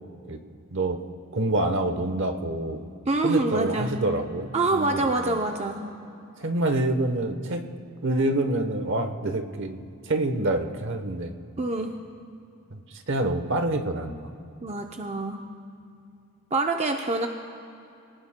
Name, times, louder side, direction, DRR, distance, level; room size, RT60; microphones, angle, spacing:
voice 1, 0.7-1.0 1.3-2.8 3.2-5.4 6.4-7.7 8.0-11.3 12.7-14.3, right 2 dB, 55° right, 7 dB, 0.9 m, -27 dB
voice 2, 3.1-3.9 4.5-5.9 11.6-12.0 14.6-15.5 16.5-17.3, right 2 dB, 30° right, 3 dB, 0.6 m, -26 dB
27.0 x 19.0 x 2.2 m, 2.6 s
head